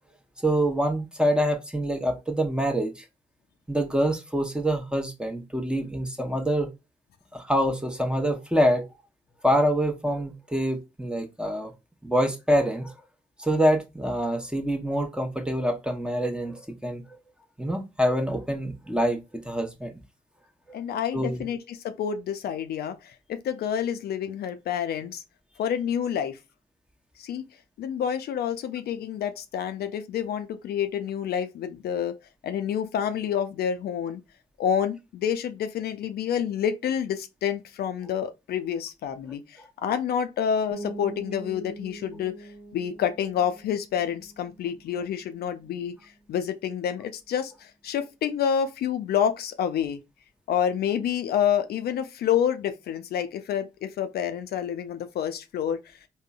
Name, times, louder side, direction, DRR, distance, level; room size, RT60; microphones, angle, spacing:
voice 1, 0.4-3.0 3.7-6.7 7.3-8.8 9.4-11.7 12.0-12.9 13.4-17.0 17.6-19.9 21.1-21.4, equal, 5° right, 0.8 m, -25 dB
voice 2, 20.7-25.2 25.6-26.4 27.2-27.4 27.8-32.2 32.4-34.2 34.6-50.0 50.5-56.0, left 8 dB, 65° left, 0.4 m, -28 dB
sound 1, 40.7-46.3, right 2 dB, 25° right, 1.3 m, -43 dB
3.6 x 2.1 x 2.3 m
hypercardioid pair, 40°, 17 cm